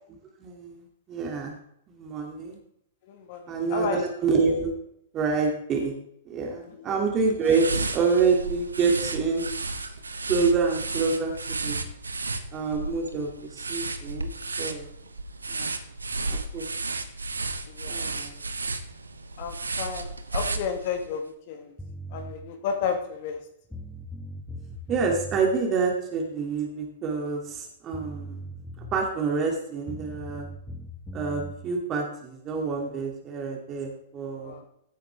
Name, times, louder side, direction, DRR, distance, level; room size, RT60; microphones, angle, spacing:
voice 1, 0.4-1.6 1.9-2.6 3.5-3.9 4.2-4.7 5.1-5.9 6.3-9.5 10.3-11.8 12.5-14.8 15.5-15.7 16.3-16.7 17.8-18.4 24.9-28.4 28.9-30.5 31.1-34.6, right 4 dB, 30° right, 1 dB, 2.5 m, -27 dB
voice 2, 3.1-4.0 6.6-7.0 17.7-18.2 19.4-21.7 22.1-23.4 34.4-34.6, left 7 dB, 50° left, 5 dB, 1.8 m, -32 dB
sound 1, 7.4-21.1, right 3 dB, 80° right, 1.1 m, -33 dB
sound 2, 21.8-22.4 23.4-23.5 23.7-25.4 27.6-27.7 27.9-29.1 29.9-31.6, right 1 dB, 5° left, 1.9 m, -39 dB
15.5 x 9.1 x 3.5 m, 0.73 s
figure-of-eight pair, 105°, 0 cm